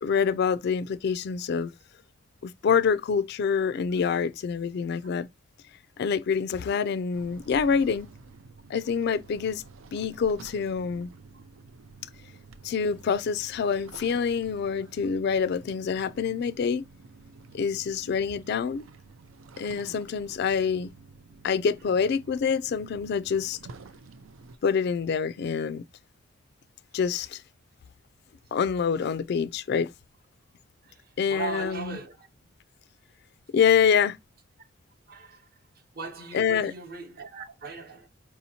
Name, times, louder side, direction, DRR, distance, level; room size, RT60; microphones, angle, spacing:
voice 1, 0.0-1.7 2.4-5.3 6.0-8.1 8.7-9.6 9.9-11.1 12.6-16.8 17.5-18.9 19.6-20.9 21.4-23.6 24.6-25.8 26.9-27.4 28.5-29.9 31.2-32.0 33.5-34.2 36.3-36.7, left 6 dB, 55° left, 0.3 m, -26 dB
sound 1, 7.1-24.6, right 4 dB, 85° right, 0.5 m, -50 dB
voice 2, 30.8-32.3 35.1-35.6 35.9-38.1, right 4 dB, 50° right, 0.8 m, -39 dB
4.8 x 2.8 x 2.7 m
head